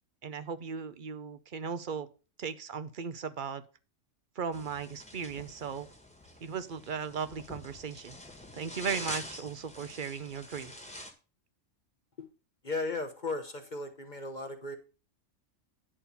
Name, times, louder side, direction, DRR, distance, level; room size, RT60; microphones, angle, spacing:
voice 1, 0.2-2.1 2.4-3.6 4.4-5.9 6.4-8.2 8.5-10.7, right 6 dB, 45° right, 12 dB, 0.8 m, -37 dB
sound 1, 4.5-11.1, left 1 dB, 5° left, 1.5 m, -45 dB
voice 2, 12.6-14.8, left 3 dB, 40° left, 6 dB, 1.0 m, -36 dB
10.0 x 4.3 x 6.8 m, 0.35 s
omnidirectional pair, 1.3 m